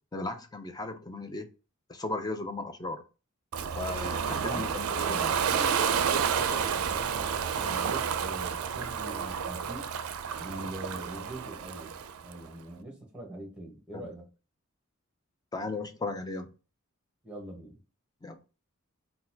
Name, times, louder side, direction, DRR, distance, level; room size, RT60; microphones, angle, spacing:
voice 1, 0.1-1.5 1.9-3.0 3.8-5.4 15.5-16.5 18.2-18.4, left 2 dB, 20° left, 0.4 m, -36 dB
Ocean, 3.5-12.4, right 7 dB, 75° right, 0.4 m, -30 dB
voice 2, 4.3-4.7 4.9-9.9 10.4-14.3 17.2-17.8, right 1 dB, 5° right, 1.1 m, -43 dB
4.0 x 2.3 x 2.6 m
head